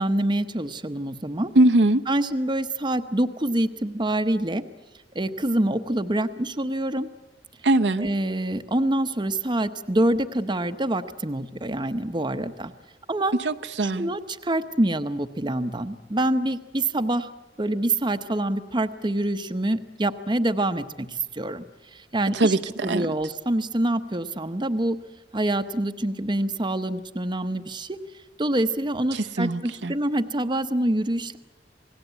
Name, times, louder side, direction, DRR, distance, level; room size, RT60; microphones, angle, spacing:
voice 1, 0.0-1.5 2.1-4.6 5.1-7.1 8.0-12.7 13.1-13.3 13.8-17.3 17.6-21.6 21.9-22.6 22.8-25.0 25.3-28.0 28.4-31.4, right 1 dB, 25° right, 8 dB, 0.9 m, -26 dB
voice 2, 1.6-2.0 7.6-8.1 13.4-14.1 22.3-23.1 29.1-29.9, right 2 dB, 75° right, 7 dB, 0.9 m, -21 dB
28.0 x 19.0 x 8.1 m, 1.1 s
head